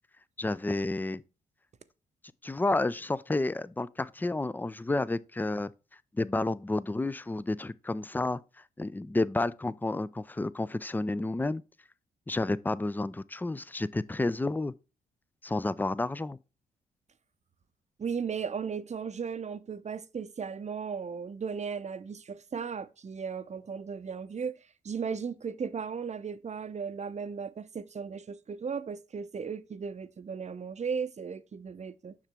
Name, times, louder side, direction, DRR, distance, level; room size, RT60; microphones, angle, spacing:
voice 1, 0.4-1.2 2.4-5.7 6.1-8.4 8.8-11.6 12.3-14.7 15.4-16.4, left 2 dB, 10° left, 0.4 m, -30 dB
voice 2, 18.0-24.6 24.8-32.2, right 6 dB, 35° right, 0.7 m, -36 dB
7.3 x 5.8 x 3.5 m
hypercardioid pair, 45°, 19 cm